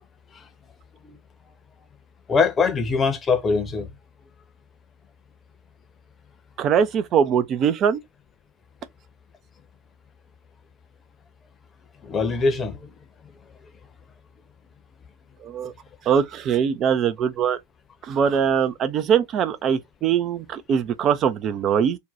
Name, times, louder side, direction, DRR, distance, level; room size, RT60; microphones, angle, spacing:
voice 1, 2.3-3.9 12.0-12.8, left 4 dB, 20° left, 0.7 m, -22 dB
voice 2, 6.6-8.0 15.4-15.7 16.1-17.6 18.0-22.0, right 7 dB, 30° right, 0.3 m, -22 dB
2.7 x 2.1 x 3.8 m
figure-of-eight pair, 90°, 0 cm